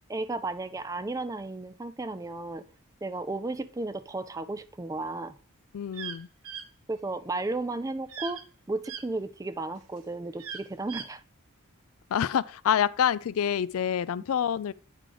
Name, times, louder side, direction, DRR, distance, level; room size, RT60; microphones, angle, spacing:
voice 1, 0.1-2.6 3.0-5.4 6.9-8.4 8.7-11.2, right 2 dB, 15° right, 0.3 m, -34 dB
voice 2, 5.7-6.3 12.1-14.7, left 8 dB, 70° left, 0.3 m, -27 dB
sound 1, 5.9-6.2 6.4-6.6 8.1-8.4 8.8-9.0 10.4-11.1, right 7 dB, 75° right, 1.0 m, -38 dB
9.0 x 3.8 x 4.9 m
head